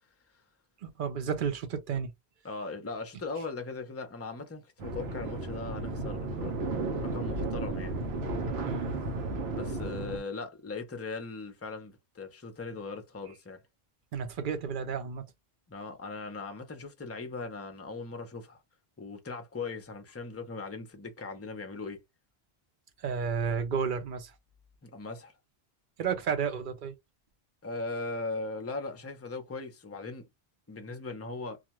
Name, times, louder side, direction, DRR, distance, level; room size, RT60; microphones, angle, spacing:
voice 1, 0.8-2.1 8.6-8.9 14.1-15.3 23.0-24.3 26.0-26.9, right 6 dB, 60° right, 0.7 m, -32 dB
voice 2, 2.4-7.9 9.5-13.6 15.7-18.6 19.0-22.0 24.8-25.3 27.6-30.3 30.7-31.6, left 3 dB, 20° left, 0.4 m, -39 dB
sound 1, 4.8-10.2, right 2 dB, 85° right, 0.9 m, -33 dB
2.4 x 2.2 x 2.9 m
omnidirectional pair, 1.0 m